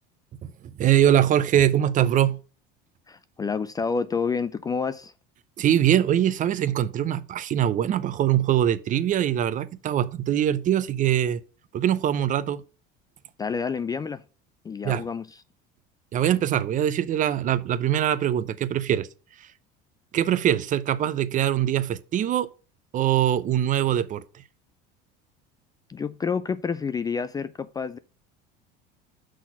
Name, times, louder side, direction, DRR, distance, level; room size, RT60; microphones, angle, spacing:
voice 1, 0.4-2.4 5.6-11.4 11.7-12.6 14.8-15.1 16.1-19.1 19.4-19.5 20.1-22.5 22.9-24.2, right 11 dB, 40° right, 0.5 m, -23 dB
voice 2, 3.1-5.1 13.4-14.2 14.6-15.3 25.9-28.0, left 5 dB, 20° left, 0.3 m, -29 dB
6.2 x 4.1 x 5.8 m
supercardioid pair, 115°, 21 cm